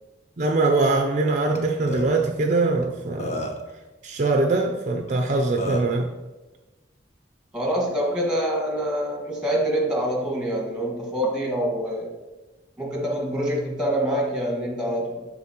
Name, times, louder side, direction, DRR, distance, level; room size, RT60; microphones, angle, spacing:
voice 1, 0.4-3.5 4.0-6.1, right 3 dB, 45° right, 3 dB, 0.5 m, -22 dB
Burping eructation, 1.5-1.6 1.9-2.1 2.8-2.9 3.2-3.7 5.1-5.2 5.6-5.9, left 1 dB, 40° left, 0.9 m, -30 dB
voice 2, 7.5-12.1 12.8-15.3, right 1 dB, 5° right, -2 dB, 1.8 m, -25 dB
12.0 x 4.1 x 3.0 m, 1.1 s
head